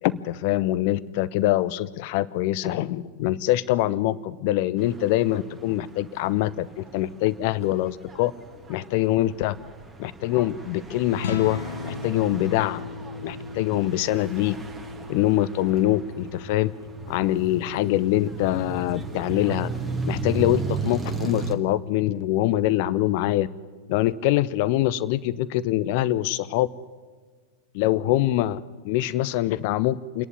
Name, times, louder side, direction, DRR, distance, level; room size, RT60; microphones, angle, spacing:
voice 1, 0.0-8.3 8.7-9.6 10.0-12.8 13.2-14.5 15.1-16.7 17.1-19.7 20.1-23.5 23.9-26.7 27.7-30.2, left 14 dB, 50° left, 16 dB, 0.6 m, -24 dB
sound 1, 4.8-21.5, right 4 dB, 15° right, 2.0 m, -36 dB
sound 2, 11.1-26.9, left 2 dB, 90° left, 0.7 m, -42 dB
sound 3, 11.1-17.5, left 6 dB, 65° left, 1.1 m, -40 dB
27.0 x 11.0 x 9.6 m, 1.5 s
figure-of-eight pair, 90°, 0 cm